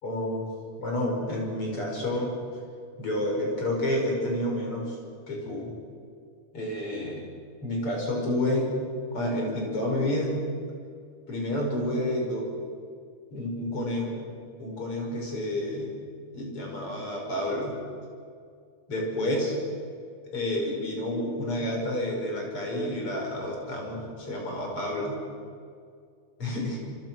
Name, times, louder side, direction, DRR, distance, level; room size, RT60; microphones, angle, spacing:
voice 1, 0.0-0.4 0.8-2.4 3.0-5.0 5.3-5.7 6.5-7.2 7.6-8.7 9.1-10.4 11.3-12.5 13.3-14.3 14.6-16.0 16.3-17.8 18.9-19.6 20.3-25.2 26.4-26.8, left 1 dB, 45° left, 0 dB, 6.2 m, -29 dB
27.5 x 26.5 x 6.2 m, 2.3 s
omnidirectional pair, 3.4 m